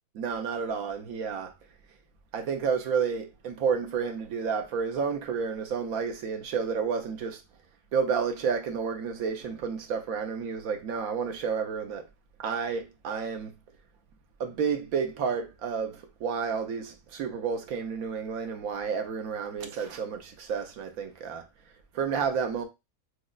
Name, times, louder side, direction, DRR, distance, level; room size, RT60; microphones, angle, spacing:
voice 1, 0.1-1.5 2.3-7.4 7.9-12.0 12.4-13.5 14.4-21.4 21.9-22.6, right 6 dB, 75° right, 1.1 m, -30 dB
6.3 x 2.1 x 2.3 m
omnidirectional pair, 1.5 m